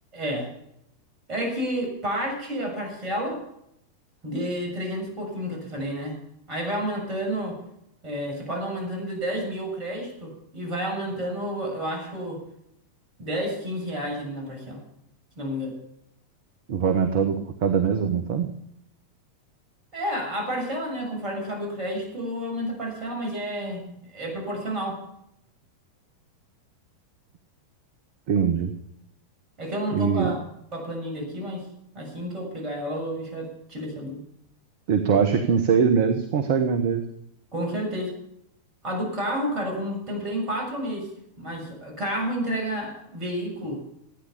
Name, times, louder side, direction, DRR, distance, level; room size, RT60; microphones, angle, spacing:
voice 1, 0.1-0.5 1.3-3.4 4.2-6.2 6.5-7.6 8.0-12.4 13.2-14.8 15.4-15.8 19.9-25.0 29.6-30.4 30.7-31.7 31.9-34.2 37.5-38.1 38.8-41.1 41.4-43.8, equal, 35° right, 2 dB, 6.8 m, -30 dB
voice 2, 16.7-18.5 28.3-28.7 29.9-30.3 34.9-37.0, right 6 dB, 50° right, 8 dB, 1.2 m, -22 dB
15.5 x 9.9 x 6.9 m, 0.76 s
figure-of-eight pair, 90°, 0 cm